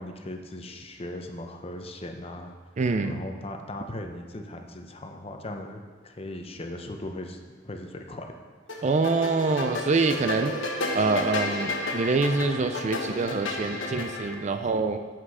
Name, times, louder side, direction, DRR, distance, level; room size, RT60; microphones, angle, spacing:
voice 1, 0.0-2.5 3.0-8.4, left 1 dB, 30° left, 4 dB, 0.8 m, -38 dB
voice 2, 2.8-3.2 8.8-10.5 10.9-15.0, right 3 dB, 40° right, 8 dB, 0.4 m, -25 dB
sound 1, 8.7-14.3, left 2 dB, 80° left, 1.2 m, -32 dB
8.6 x 7.5 x 4.8 m, 1.5 s
head